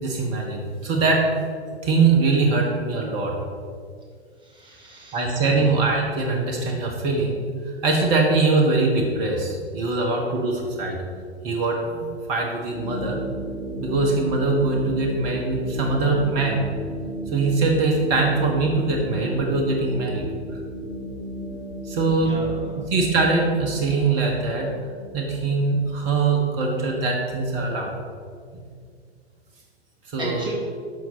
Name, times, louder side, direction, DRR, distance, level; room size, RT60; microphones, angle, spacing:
voice 1, 0.0-1.2 1.8-3.3 5.1-7.4 7.8-11.0 11.4-13.2 13.8-16.7 17.3-20.3 21.8-22.3 22.9-24.7 25.1-27.9 30.1-30.5, right 3 dB, 40° right, 0 dB, 1.4 m, -22 dB
voice 2, 4.5-5.2 5.6-5.7 22.1-22.8 30.2-30.5, right 2 dB, 15° right, -2 dB, 2.2 m, -35 dB
sound 1, 12.7-27.1, right 1 dB, 80° left, 2.6 m, -35 dB
11.0 x 6.2 x 4.1 m, 2.1 s
figure-of-eight pair, 100°, 33 cm